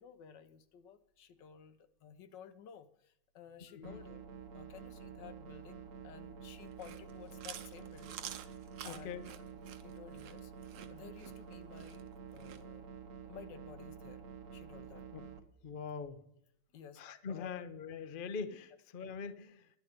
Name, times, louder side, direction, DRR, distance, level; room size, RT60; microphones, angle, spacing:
voice 1, 0.0-4.3 4.5-8.5 8.8-9.4 9.8-10.5 10.9-12.9 13.2-14.2 14.5-15.1 16.7-17.0 17.3-17.7, left 8 dB, 75° left, 11 dB, 1.5 m, -54 dB
sound 1, 3.8-15.4, right 7 dB, 50° right, 1.3 m, -49 dB
Chewing mastication, 6.6-12.6, right 10 dB, 85° right, 1.5 m, -49 dB
voice 2, 8.8-9.2 15.1-15.3 15.6-16.2 17.0-19.7, left 5 dB, 50° left, 11 dB, 0.6 m, -43 dB
11.0 x 9.9 x 5.1 m, 0.76 s
omnidirectional pair, 2.0 m